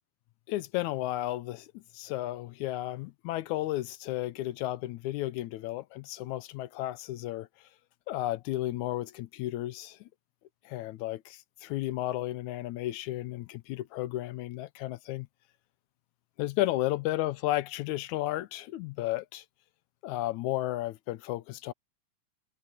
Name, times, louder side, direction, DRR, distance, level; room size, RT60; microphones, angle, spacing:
voice 1, 0.5-7.5 8.1-10.1 10.7-15.3 16.4-19.4 20.0-21.7, left 15 dB, 75° left, 1.9 m, -33 dB
omnidirectional pair, 3.7 m